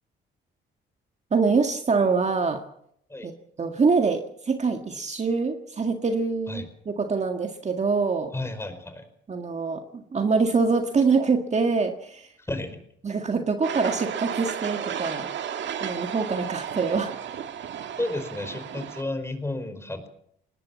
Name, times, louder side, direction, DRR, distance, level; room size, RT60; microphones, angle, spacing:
voice 1, 1.3-2.6 3.2-3.3 3.6-8.3 9.3-12.3 13.0-15.3 15.8-17.1, right 4 dB, 35° right, 5 dB, 1.9 m, -24 dB
voice 2, 8.3-9.1 12.5-12.8 18.0-20.1, left 2 dB, 15° left, 8 dB, 4.8 m, -32 dB
sound 1, 13.6-19.0, right 8 dB, 65° right, 1.8 m, -33 dB
20.5 x 19.0 x 7.3 m, 0.70 s
cardioid pair, 90°, 20 cm